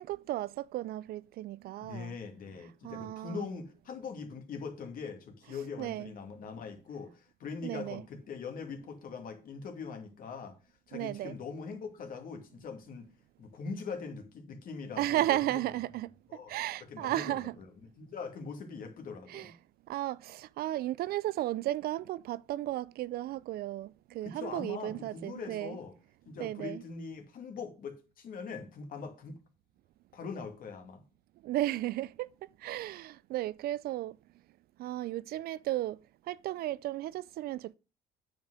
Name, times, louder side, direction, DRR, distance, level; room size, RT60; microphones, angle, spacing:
voice 1, 0.0-2.2 2.8-3.5 5.8-6.1 7.6-8.0 10.9-11.3 15.0-16.1 16.5-17.6 19.3-19.5 19.9-25.8 26.4-26.8 31.4-32.3 32.6-34.2 34.8-36.0 36.3-37.7, right 15 dB, 65° right, 0.4 m, -34 dB
voice 2, 1.8-10.6 10.9-13.1 13.4-15.5 16.3-16.5 16.9-17.6 18.0-19.5 24.2-25.9 26.3-29.4 30.1-31.0, left 5 dB, 55° left, 2.5 m, -42 dB
9.1 x 5.3 x 6.4 m
cardioid pair, 110°, 17 cm